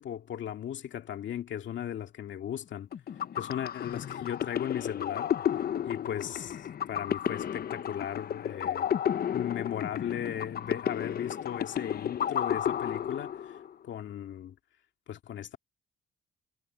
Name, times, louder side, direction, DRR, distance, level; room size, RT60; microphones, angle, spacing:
voice 1, 0.0-2.9 3.3-5.4 5.9-8.9 9.3-13.6 13.8-14.6 15.1-15.6, left 10 dB, 70° left, 2.3 m, -37 dB
sound 1, 2.9-13.7, left 9 dB, 50° left, 0.8 m, -32 dB
cardioid pair, 90°, 20 cm